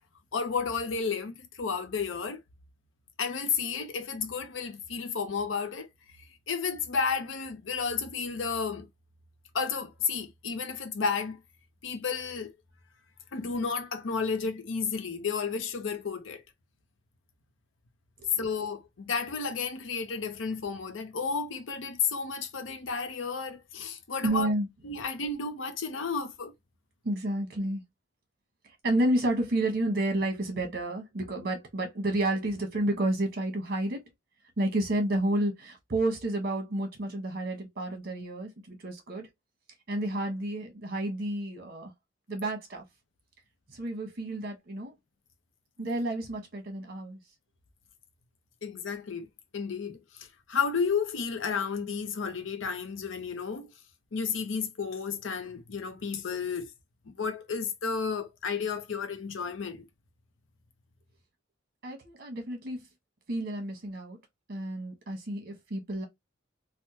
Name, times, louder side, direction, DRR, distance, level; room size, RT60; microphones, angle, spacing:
voice 1, 0.3-2.4 3.2-5.9 6.5-8.9 9.5-11.4 11.8-12.5 13.3-16.4 18.4-24.5 24.8-26.5 48.6-49.3 49.5-53.7 54.1-56.7 57.1-59.8, left 5 dB, 85° left, 0.6 m, -32 dB
voice 2, 24.2-24.7 27.0-27.8 28.8-34.0 34.6-39.3 39.9-41.9 42.3-42.8 43.7-44.9 45.8-47.2 61.8-62.8 63.3-64.2 64.5-66.1, right 1 dB, 55° right, 1.1 m, -30 dB
3.5 x 2.1 x 2.8 m
head